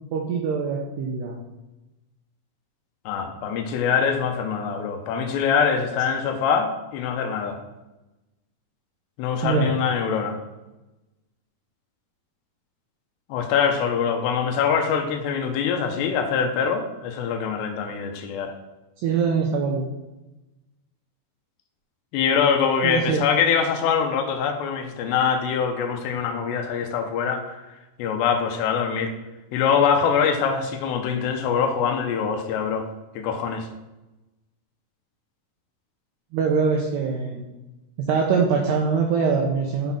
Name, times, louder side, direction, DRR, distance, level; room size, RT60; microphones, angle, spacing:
voice 1, 0.1-1.4 9.4-9.7 19.0-19.9 22.8-23.3 36.3-37.4 38.0-39.9, right 5 dB, 85° right, 1 dB, 2.4 m, -23 dB
voice 2, 3.1-7.6 9.2-10.4 13.3-18.5 22.1-27.6 28.0-29.1 29.5-32.9 33.2-33.7, left 6 dB, 80° left, 4 dB, 2.6 m, -23 dB
9.8 x 4.1 x 5.7 m, 1.0 s
omnidirectional pair, 5.8 m